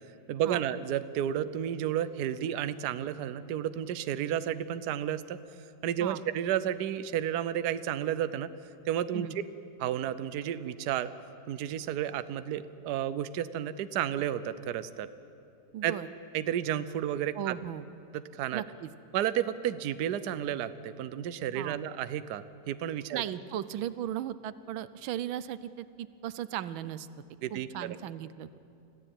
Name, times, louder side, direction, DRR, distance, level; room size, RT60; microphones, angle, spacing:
voice 1, 0.3-5.4 5.8-8.5 8.9-9.3 9.8-11.1 11.5-15.1 15.8-15.9 16.3-17.5 18.1-18.6 19.1-23.2 27.4-28.0, right 10 dB, 65° right, 13 dB, 1.2 m, -32 dB
voice 2, 15.7-16.1 17.3-17.8 18.5-18.9 21.5-21.8 23.1-27.1 27.5-28.6, right 11 dB, 85° right, 15 dB, 1.5 m, -36 dB
25.5 x 15.0 x 9.0 m, 2.7 s
omnidirectional pair, 2.1 m